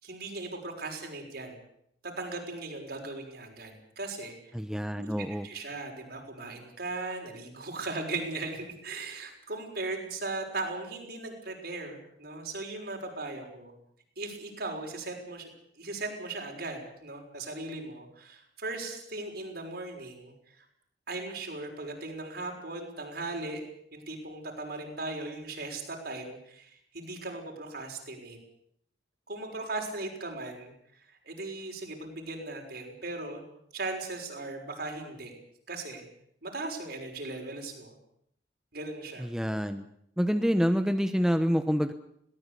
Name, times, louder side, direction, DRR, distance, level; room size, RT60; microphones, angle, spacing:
voice 1, 0.0-1.6 2.0-4.3 5.0-13.7 14.2-15.5 15.8-20.6 21.1-28.4 29.3-30.7 31.1-33.4 33.7-35.3 35.7-36.0 36.4-38.0 38.7-39.3, right 2 dB, 60° right, 2 dB, 6.1 m, -38 dB
voice 2, 4.5-5.5 39.2-39.8 40.2-41.9, equal, 5° right, 8 dB, 0.9 m, -27 dB
21.5 x 18.5 x 8.4 m, 0.70 s
head